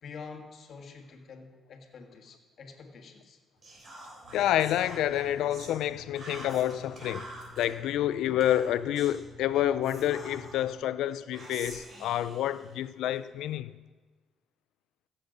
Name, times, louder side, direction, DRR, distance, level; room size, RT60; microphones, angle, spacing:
voice 1, 0.0-3.4, left 5 dB, 60° left, 1.6 m, -47 dB
Whispering, 3.6-5.7 6.2-7.7 8.4-9.2 9.8-10.7 11.3-13.2, right 2 dB, 45° right, 3.5 m, -47 dB
sound 1, 4.2-10.8, left 2 dB, 65° right, 2.8 m, -51 dB
voice 2, 4.3-7.3 7.6-13.7, left 12 dB, 85° left, 0.4 m, -28 dB
15.5 x 7.3 x 5.2 m
cardioid pair, 90°, 0 cm